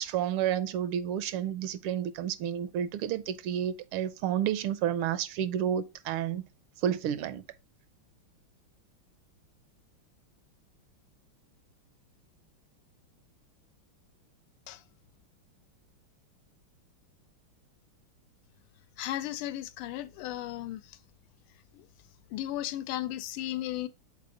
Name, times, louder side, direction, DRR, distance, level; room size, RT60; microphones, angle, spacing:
voice 1, 0.0-6.4 6.8-7.4, right 10 dB, 80° right, 1.5 m, -30 dB
voice 2, 19.0-20.8 22.3-23.9, left 13 dB, 85° left, 1.5 m, -35 dB
6.6 x 4.2 x 3.6 m
omnidirectional pair, 2.4 m